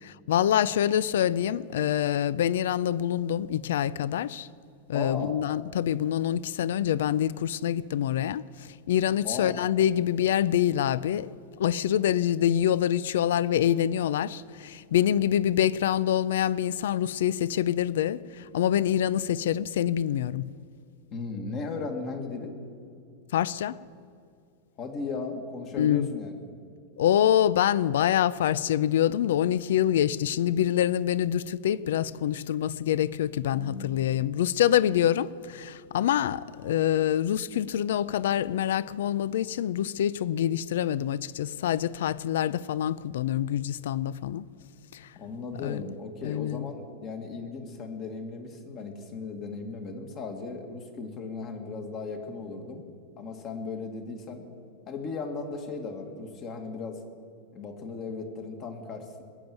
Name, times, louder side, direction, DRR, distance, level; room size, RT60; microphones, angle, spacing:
voice 1, 0.0-4.5 4.9-8.4 8.9-11.3 11.6-20.5 23.3-23.8 25.8-26.1 27.0-44.4 44.9-45.1 45.6-45.9 46.2-46.7, left 10 dB, 80° left, 0.4 m, -26 dB
voice 2, 4.9-5.4 9.2-9.6 21.1-22.5 24.8-26.4 33.5-34.0 45.1-52.8 53.2-54.4 54.9-57.0 57.5-59.2, left 4 dB, 30° left, 1.7 m, -36 dB
20.0 x 7.2 x 9.4 m
supercardioid pair, 160°, 0 cm